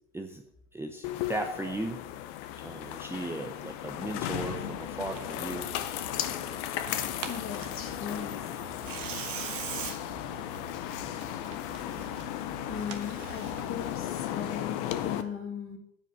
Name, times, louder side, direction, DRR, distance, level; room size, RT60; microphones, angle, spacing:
voice 1, 0.7-2.0 2.6-5.7, right 2 dB, 5° right, 4 dB, 0.8 m, -36 dB
sound 1, 1.0-15.2, left 12 dB, 55° left, 0.9 m, -35 dB
Tearing, 4.3-13.9, right 8 dB, 70° right, 1.3 m, -43 dB
voice 2, 7.3-8.6 12.7-15.8, left 7 dB, 35° left, 4 dB, 2.2 m, -38 dB
9.6 x 5.0 x 7.1 m, 0.75 s
hypercardioid pair, 80°, 39 cm